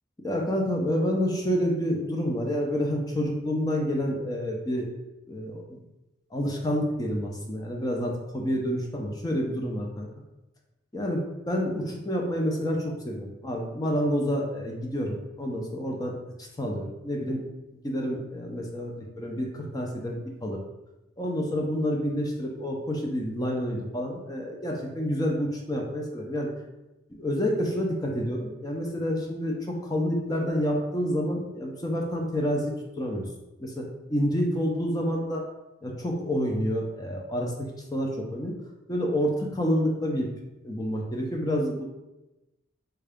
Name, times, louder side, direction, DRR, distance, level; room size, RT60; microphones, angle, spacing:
voice 1, 0.2-5.0 5.3-5.8 6.3-10.1 10.9-16.1 16.4-17.4 17.8-20.6 21.2-26.5 27.1-33.2 33.6-35.4 35.8-38.5 38.9-40.3 40.6-41.8, equal, 20° left, 0 dB, 0.5 m, -28 dB
3.6 x 2.3 x 3.4 m, 0.99 s
head